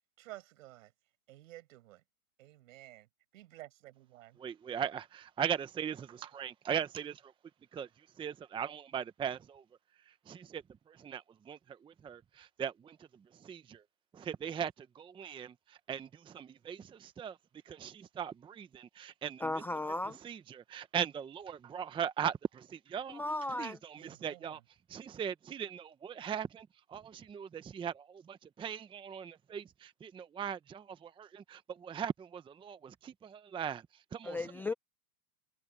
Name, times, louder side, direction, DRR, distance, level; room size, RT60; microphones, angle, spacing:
voice 1, 0.2-0.9 1.3-2.0 2.4-3.1 3.3-4.4 24.0-24.6, right 16 dB, 60° right, 6.2 m, -52 dB
voice 2, 4.4-7.3 7.7-9.6 10.1-13.8 14.1-17.4 17.6-19.6 20.2-23.2 23.5-24.6 24.9-34.6, right 8 dB, 10° right, 0.8 m, -40 dB
voice 3, 19.4-20.2 23.1-23.8 34.2-34.7, left 2 dB, 5° left, 0.4 m, -35 dB
hypercardioid pair, 130°, 44 cm